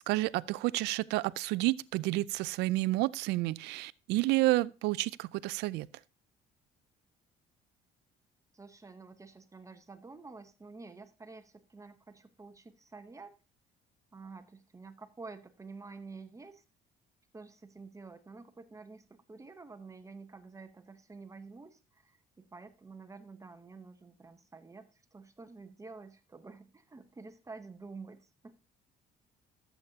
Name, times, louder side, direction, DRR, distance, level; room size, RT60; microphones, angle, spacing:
voice 1, 0.1-5.9, right 19 dB, 85° right, 0.4 m, -30 dB
voice 2, 8.5-13.3 14.1-16.6 17.3-28.6, right 4 dB, 20° right, 0.9 m, -49 dB
13.5 x 8.1 x 2.8 m
cardioid pair, 110°, 17 cm